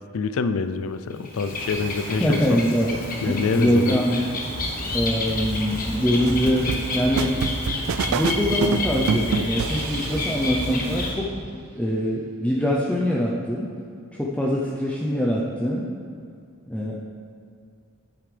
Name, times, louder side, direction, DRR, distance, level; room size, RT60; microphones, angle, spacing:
voice 1, 0.1-2.6 3.2-4.0, left 4 dB, 75° left, 11 dB, 0.4 m, -26 dB
Bird, 1.1-11.1, left 2 dB, 40° left, 1.2 m, -30 dB
voice 2, 2.2-3.0 3.2-4.2 4.9-7.4 8.1-13.7 14.2-15.9 16.7-16.9, equal, 5° left, -4 dB, 0.6 m, -23 dB
sound 1, 4.4-11.6, right 1 dB, 30° right, 1.0 m, -34 dB
sound 2, 6.3-10.6, right 7 dB, 75° right, 0.3 m, -28 dB
9.1 x 8.8 x 3.3 m, 2.4 s
head